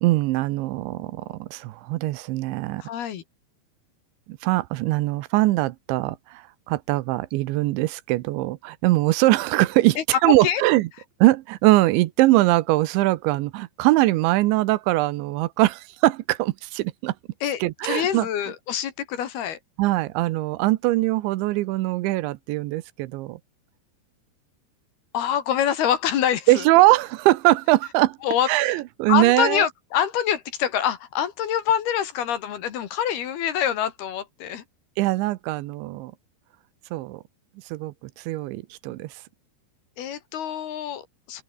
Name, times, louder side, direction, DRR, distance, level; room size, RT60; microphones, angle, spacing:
voice 1, 0.0-2.8 4.3-10.9 11.2-17.1 17.6-18.3 19.8-23.4 26.5-28.2 28.5-29.7 35.0-36.1 36.9-37.2 37.7-39.1, right 18 dB, 85° right, 3.2 m, -22 dB
voice 2, 2.8-3.2 10.0-10.6 17.4-19.6 25.1-26.6 28.2-28.5 29.1-34.6 40.0-41.4, left 9 dB, 65° left, 3.7 m, -25 dB
open air
omnidirectional pair, 5.2 m